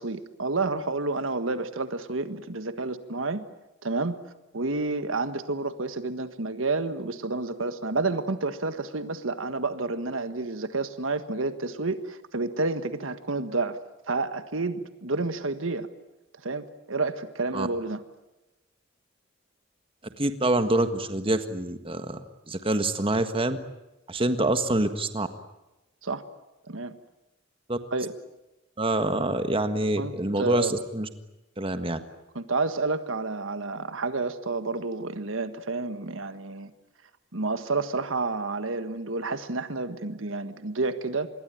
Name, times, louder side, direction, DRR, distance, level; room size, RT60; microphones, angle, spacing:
voice 1, 0.0-3.4 3.8-4.2 4.5-13.8 14.1-15.9 16.4-18.0 26.0-26.2 26.7-27.0 27.9-28.1 30.0-30.1 30.4-30.7 32.3-36.7 37.3-41.3, right 3 dB, 80° right, 10 dB, 1.6 m, -30 dB
voice 2, 20.2-23.6 24.1-25.3 27.7-27.8 28.8-31.1 31.6-32.0, right 1 dB, 25° right, 9 dB, 1.6 m, -26 dB
26.5 x 21.5 x 9.3 m, 1.0 s
head